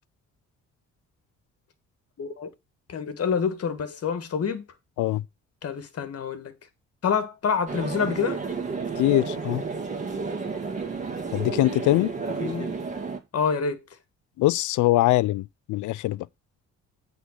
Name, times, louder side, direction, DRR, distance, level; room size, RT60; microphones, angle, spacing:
voice 1, 2.2-2.5 2.9-4.7 5.6-6.5 7.0-8.4 12.4-12.8 13.3-13.8, left 6 dB, 50° left, 1.7 m, -27 dB
sound 1, 7.7-13.2, right 4 dB, 25° right, 2.3 m, -31 dB
voice 2, 9.0-9.6 11.3-12.1 14.4-16.3, left 16 dB, 75° left, 0.5 m, -22 dB
8.2 x 3.9 x 6.4 m
cardioid pair, 90°, 30 cm